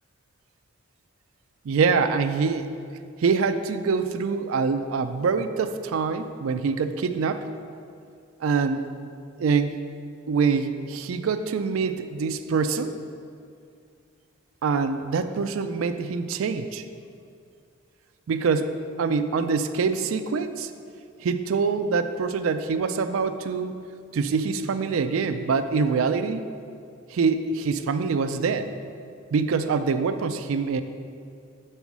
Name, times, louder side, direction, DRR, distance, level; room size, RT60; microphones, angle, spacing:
voice 1, 1.6-2.7 3.2-7.5 8.4-8.8 9.4-9.8 10.3-13.0 14.6-16.8 18.3-18.7 19.0-20.7 21.2-23.8 24.1-26.4 27.1-28.7 29.3-30.8, right 5 dB, 80° right, 9 dB, 0.4 m, -25 dB
6.2 x 5.5 x 6.0 m, 2.3 s
head